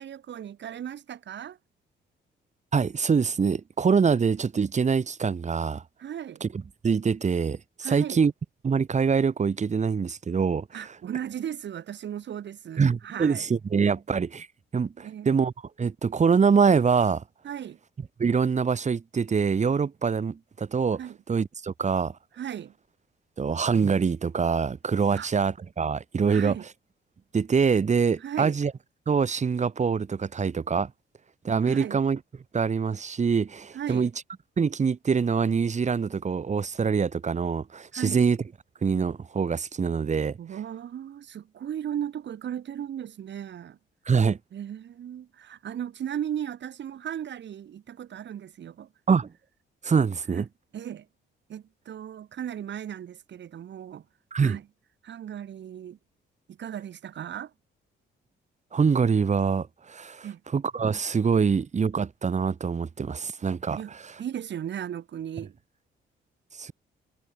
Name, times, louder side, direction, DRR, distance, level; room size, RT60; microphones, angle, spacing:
voice 1, 0.0-1.6 6.0-6.4 7.8-8.3 10.7-13.4 15.0-15.3 17.4-17.8 21.0-21.2 22.3-22.7 25.1-25.3 26.3-26.7 28.2-28.6 31.6-32.0 33.7-34.1 37.9-38.2 40.4-43.8 44.5-48.9 50.3-50.4 50.7-51.1 51.5-54.1 54.4-54.6 55.0-56.0 56.5-57.5 60.2-60.4 63.8-65.6, right 9 dB, 65° right, 7.4 m, -36 dB
voice 2, 2.7-5.8 6.4-8.3 8.6-11.0 12.8-14.5 14.7-15.5 15.8-17.2 18.2-21.0 21.3-22.2 23.4-26.6 27.3-28.7 29.1-30.9 31.4-32.2 32.5-34.1 34.6-38.4 38.8-40.4 44.1-44.4 49.1-49.3 49.8-50.5 54.3-54.6 58.7-60.3 60.5-64.1 66.6-66.7, right 5 dB, 35° right, 2.1 m, -24 dB
cardioid pair, 90°, 20 cm